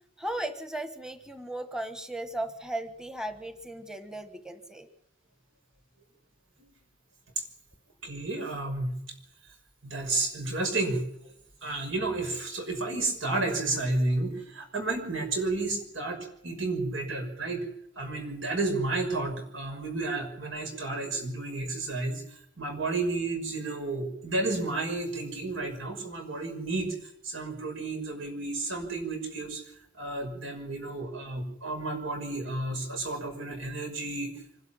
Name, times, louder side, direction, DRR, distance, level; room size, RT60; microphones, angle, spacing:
voice 1, 0.2-4.9, right 1 dB, 5° right, 8 dB, 1.2 m, -36 dB
voice 2, 8.0-8.9 9.8-11.0 11.6-17.7 18.0-29.6 30.0-34.3, right 2 dB, 85° right, 5 dB, 6.0 m, -31 dB
25.5 x 12.5 x 8.8 m, 0.74 s
head